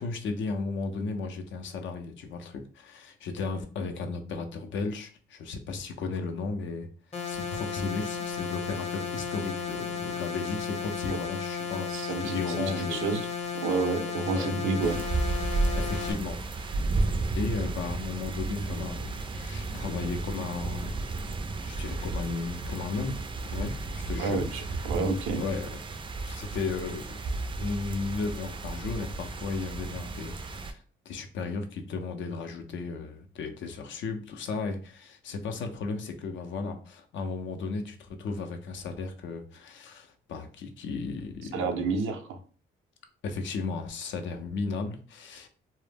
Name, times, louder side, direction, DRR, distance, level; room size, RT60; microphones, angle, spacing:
voice 1, 0.0-6.9 7.3-13.0 14.3-14.5 15.7-16.8 17.4-21.0 21.6-23.2 23.5-23.8 24.1-24.6 25.4-25.7 26.2-27.1 27.6-41.5 43.2-45.5, left 4 dB, 70° left, 6 dB, 0.5 m, -35 dB
sound 1, 7.1-16.1, left 6 dB, 35° left, 0.7 m, -34 dB
voice 2, 11.9-13.2 13.5-15.0 24.2-25.4 41.5-42.4, right 4 dB, 85° right, 6 dB, 0.5 m, -29 dB
sound 2, 14.8-30.7, right 3 dB, 25° right, 0.3 m, -33 dB
2.0 x 2.0 x 3.3 m, 0.41 s
cardioid pair, 90°, 20 cm